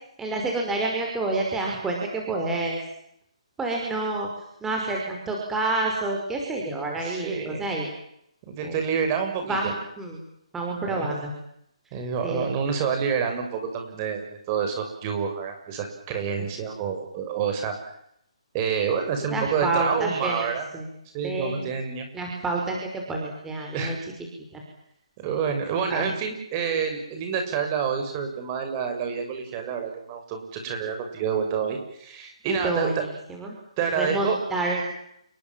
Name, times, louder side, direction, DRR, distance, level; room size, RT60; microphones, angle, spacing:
voice 1, 0.2-2.8 3.6-4.3 4.6-7.9 8.6-8.8 9.5-10.2 10.5-11.3 12.2-12.5 19.3-20.5 20.7-20.9 21.2-21.7 22.1-24.0 24.5-24.6 25.9-26.1 32.4-33.6 33.9-34.8, right 2 dB, 10° right, 0 dB, 5.6 m, -28 dB
voice 2, 7.0-7.6 8.5-9.7 10.8-11.1 11.9-17.8 18.5-20.7 21.1-22.1 23.7-24.1 25.2-32.9 33.8-34.4, right 6 dB, 25° right, 5 dB, 6.8 m, -28 dB
29.0 x 23.0 x 7.6 m, 0.73 s
hypercardioid pair, 155°, 4 cm